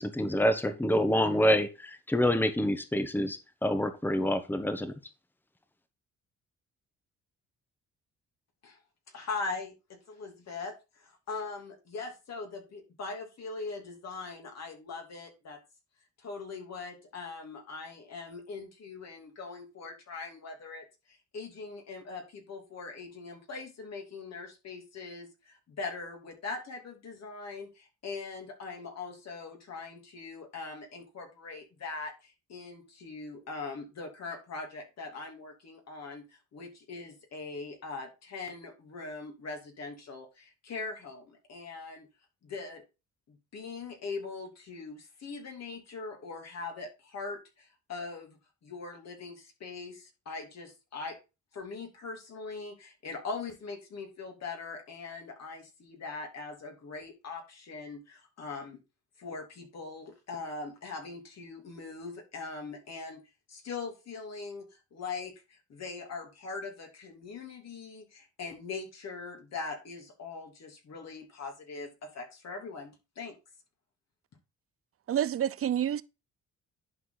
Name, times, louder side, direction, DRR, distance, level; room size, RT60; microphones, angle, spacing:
voice 1, 0.0-4.9, equal, 5° left, 1.2 m, -27 dB
voice 2, 9.1-15.6 16.2-42.1 42.4-42.8 43.3-51.2 51.5-58.8 59.2-63.2 63.5-73.3, left 4 dB, 60° left, 3.1 m, -41 dB
voice 3, 75.1-76.0, right 10 dB, 50° right, 0.6 m, -28 dB
11.0 x 4.8 x 4.1 m
cardioid pair, 90°, 30 cm